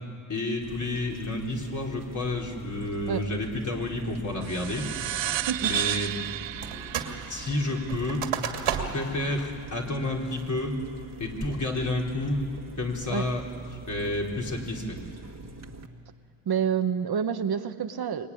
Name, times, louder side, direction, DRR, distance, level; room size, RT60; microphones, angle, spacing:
voice 1, 0.3-4.8 5.6-6.1 7.3-8.2 8.9-10.7 11.2-12.4 12.8-13.4 13.9-15.0, left 2 dB, 35° left, -1 dB, 4.0 m, -30 dB
sound 1, 0.6-15.9, right 3 dB, 30° right, 1.7 m, -44 dB
sound 2, 4.4-9.3, right 12 dB, 65° right, 0.7 m, -33 dB
voice 2, 5.3-5.7 13.1-13.3 16.5-18.3, right 7 dB, 50° right, 8 dB, 1.1 m, -28 dB
sound 3, 6.6-7.2 7.5-9.2 9.6-9.7 10.2-10.6 11.1-11.5, right 8 dB, 85° right, 2.5 m, -32 dB
25.0 x 22.0 x 9.9 m, 2.6 s
cardioid pair, 95°, 49 cm